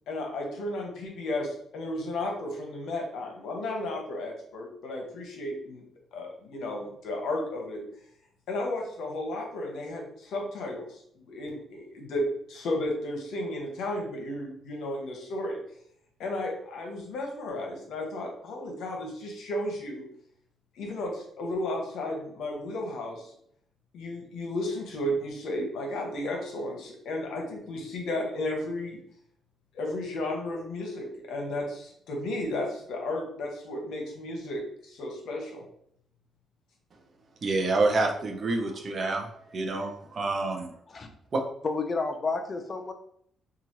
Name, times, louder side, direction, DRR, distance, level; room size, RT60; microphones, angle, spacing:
voice 1, 0.1-5.8 6.1-7.8 8.5-15.6 16.2-20.0 20.8-23.3 23.9-29.0 29.7-35.6, left 1 dB, 80° left, 1 dB, 0.8 m, -33 dB
voice 2, 37.4-39.3 39.5-40.7 41.3-41.4, right 3 dB, 45° right, 2 dB, 0.6 m, -27 dB
voice 3, 41.6-42.9, left 3 dB, 40° left, 5 dB, 0.5 m, -30 dB
2.9 x 2.3 x 2.9 m, 0.67 s
cardioid pair, 90°, 0 cm